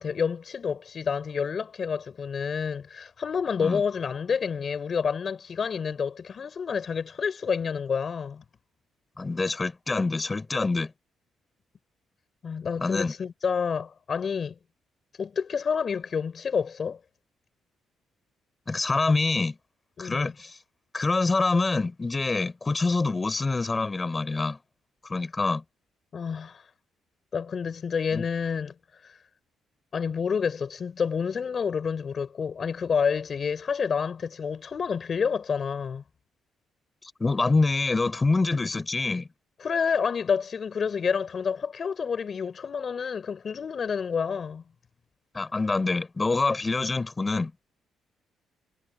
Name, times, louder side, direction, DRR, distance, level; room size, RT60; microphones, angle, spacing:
voice 1, 0.0-8.4 12.4-14.5 15.2-17.0 20.0-20.3 26.1-26.7 27.3-29.2 29.9-36.0 39.6-44.6, left 6 dB, 45° left, 4.2 m, -29 dB
voice 2, 9.2-10.9 12.8-13.1 18.7-19.6 20.0-20.6 20.9-24.6 25.1-25.6 28.1-28.2 37.0-39.3 45.3-47.5, left 3 dB, 25° left, 5.7 m, -26 dB
cardioid pair, 90°, 0 cm